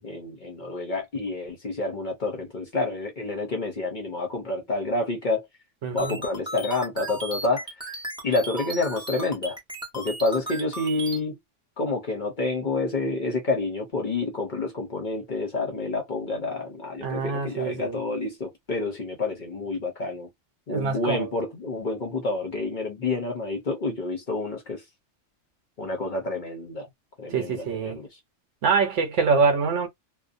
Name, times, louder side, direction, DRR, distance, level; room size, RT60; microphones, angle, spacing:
voice 1, 0.0-5.5 5.9-7.6 8.2-9.6 9.9-11.4 11.8-20.3 20.7-24.8 25.8-26.9 27.2-28.1, left 3 dB, 50° left, 0.7 m, -28 dB
voice 2, 5.8-6.2 17.0-18.0 20.7-21.3 27.3-28.0 28.6-29.9, right 5 dB, 70° right, 0.9 m, -24 dB
sound 1, 6.0-11.2, right 2 dB, 5° right, 0.7 m, -36 dB
2.5 x 2.0 x 2.5 m
omnidirectional pair, 1.3 m